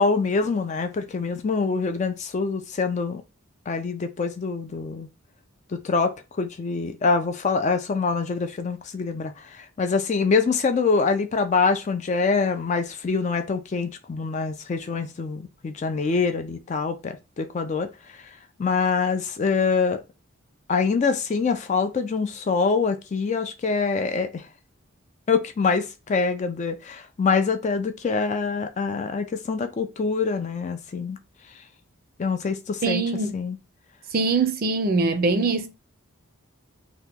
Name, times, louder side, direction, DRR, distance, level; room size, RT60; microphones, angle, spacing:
voice 1, 0.0-3.2 3.7-5.1 5.7-17.9 18.6-20.0 20.7-24.5 25.3-31.2 32.2-33.0 33.3-33.6, left 4 dB, 35° left, 0.3 m, -25 dB
voice 2, 32.8-33.3 34.1-35.7, right 3 dB, 45° right, 0.4 m, -23 dB
2.9 x 2.2 x 3.4 m
head